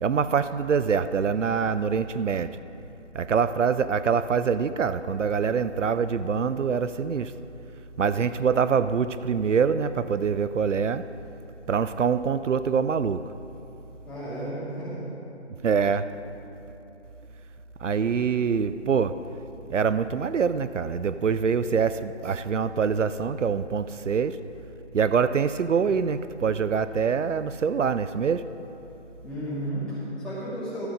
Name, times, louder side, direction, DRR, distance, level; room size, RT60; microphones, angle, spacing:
voice 1, 0.0-2.6 3.1-7.3 8.0-11.1 11.7-13.2 15.6-16.1 17.8-19.2 19.7-24.4 24.9-28.5, right 6 dB, 90° right, 13 dB, 0.6 m, -24 dB
voice 2, 14.0-15.0 29.2-30.9, right 1 dB, ahead, -13 dB, 2.6 m, -33 dB
14.0 x 7.3 x 5.1 m, 2.9 s
figure-of-eight pair, 155°, 36 cm